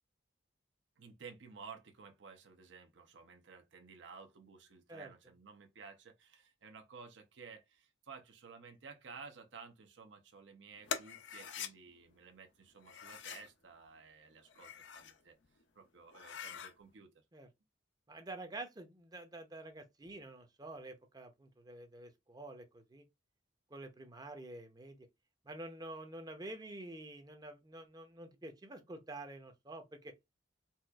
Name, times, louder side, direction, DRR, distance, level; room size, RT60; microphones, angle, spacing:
voice 1, 1.0-15.3 15.8-17.1, right 5 dB, 70° right, 0.6 m, -54 dB
sound 1, 10.9-11.7 12.8-13.5 14.4-15.2 15.6-15.7 16.1-16.7, left 7 dB, 70° left, 0.5 m, -44 dB
voice 2, 18.1-23.0 23.7-25.0 25.5-30.1, right 2 dB, 20° right, 0.6 m, -48 dB
4.2 x 2.4 x 2.3 m
head